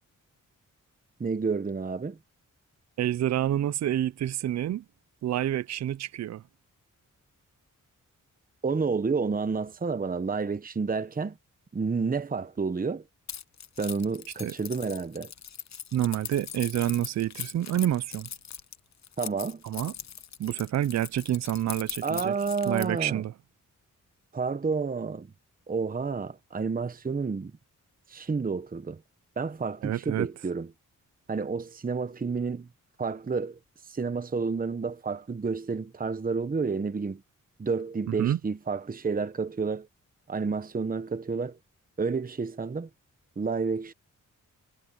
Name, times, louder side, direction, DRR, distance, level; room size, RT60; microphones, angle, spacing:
voice 1, 1.2-2.2 8.6-11.4 11.7-13.0 13.8-15.3 19.2-19.6 22.0-23.2 24.3-25.3 25.7-27.5 28.1-29.0 29.4-30.7 31.3-32.7 33.0-33.6 33.9-37.2 37.6-39.9 40.3-41.6 42.0-42.9 43.4-43.9, right 4 dB, 25° right, 1.0 m, -30 dB
voice 2, 3.0-4.8 5.2-6.4 14.4-14.5 15.9-18.3 19.6-19.9 20.4-22.4 22.7-23.3 29.8-30.3 38.1-38.4, right 11 dB, 55° right, 0.5 m, -28 dB
Keys jangling, 13.3-23.0, left 8 dB, 60° left, 1.1 m, -40 dB
cardioid pair, 80°, 32 cm